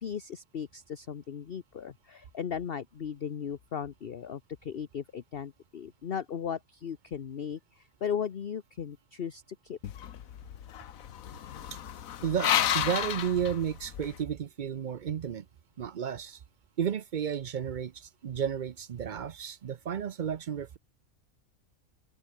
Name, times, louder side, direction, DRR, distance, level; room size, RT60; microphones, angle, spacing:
voice 1, 0.0-9.8, left 8 dB, 45° left, 1.0 m, -37 dB
sound 1, 9.8-14.2, left 10 dB, 70° left, 1.3 m, -32 dB
voice 2, 12.2-15.5 15.8-16.4 16.8-20.8, right 8 dB, 55° right, 0.5 m, -32 dB
open air
omnidirectional pair, 1.5 m